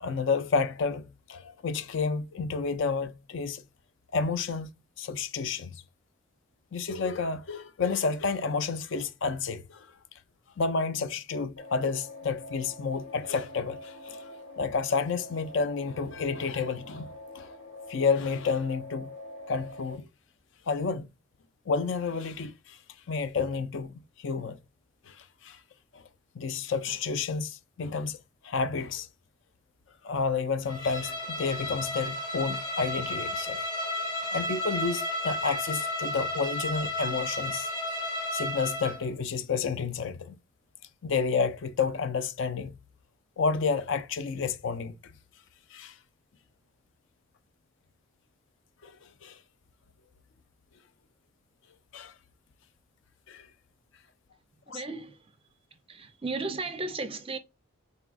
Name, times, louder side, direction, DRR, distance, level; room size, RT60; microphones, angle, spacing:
voice 1, 0.0-3.6 4.1-4.7 5.0-5.8 6.7-9.9 10.6-17.1 17.3-17.5 17.9-19.1 19.5-20.1 20.7-21.1 21.7-22.8 23.1-24.6 25.1-25.6 25.9-26.0 26.3-28.2 28.4-29.1 30.0-33.6 34.3-37.7 38.3-40.4 41.0-42.7 43.4-44.9 45.7-46.0 48.8-48.9 49.2-49.4 51.9-52.1 53.3-53.5 54.7-54.8, left 5 dB, 55° left, 0.4 m, -30 dB
sound 1, 11.6-20.0, left 1 dB, 90° left, 1.4 m, -45 dB
Bowed string instrument, 30.7-39.1, left 1 dB, 15° left, 1.0 m, -33 dB
voice 2, 54.7-55.3 55.9-57.4, right 3 dB, 25° right, 0.5 m, -35 dB
3.9 x 3.7 x 2.3 m
head